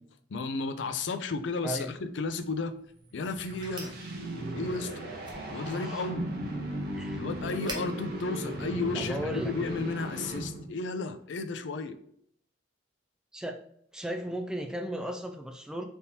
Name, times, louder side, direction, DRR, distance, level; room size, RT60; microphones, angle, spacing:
voice 1, 0.3-2.7 3.1-3.9 4.6-4.9 5.5-6.3 7.1-12.0, left 3 dB, 75° left, 10 dB, 0.4 m, -33 dB
sound 1, 2.2-9.4, right 2 dB, 25° right, 0.8 m, -49 dB
sound 2, 3.0-10.8, right 1 dB, 55° right, 0.9 m, -37 dB
voice 2, 8.9-9.5 13.3-13.6 13.9-15.9, right 1 dB, 5° right, 4 dB, 0.3 m, -35 dB
4.1 x 3.6 x 2.7 m, 0.67 s
head